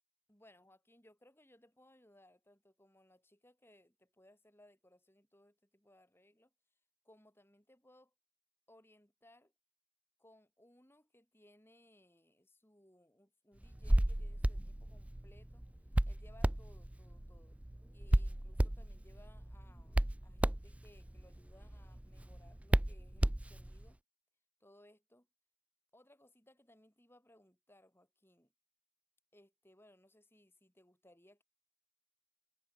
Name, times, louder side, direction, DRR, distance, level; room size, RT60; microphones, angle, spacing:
voice 1, 0.3-6.5 7.0-8.1 8.7-9.5 10.2-15.7 16.0-17.6 17.9-24.0 24.6-25.3 25.9-28.5 29.3-31.4, left 1 dB, 10° left, 4.2 m, -65 dB
Hands, 13.6-23.9, right 1 dB, 5° right, 0.3 m, -34 dB
head